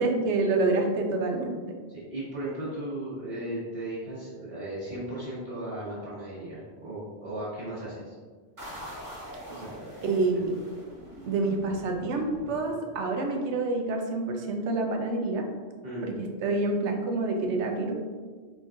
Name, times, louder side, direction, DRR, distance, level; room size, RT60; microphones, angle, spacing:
voice 1, 0.0-1.6 10.0-10.5 11.3-15.4 16.0-16.1 16.4-17.9, right 3 dB, 80° right, 3 dB, 1.0 m, -27 dB
voice 2, 1.9-8.1 9.5-10.0 10.3-10.4 15.8-16.2, right 1 dB, 55° right, -11 dB, 1.6 m, -36 dB
sound 1, 8.6-13.1, equal, 15° right, 1.5 m, -44 dB
4.6 x 3.9 x 2.5 m, 1.5 s
omnidirectional pair, 1.2 m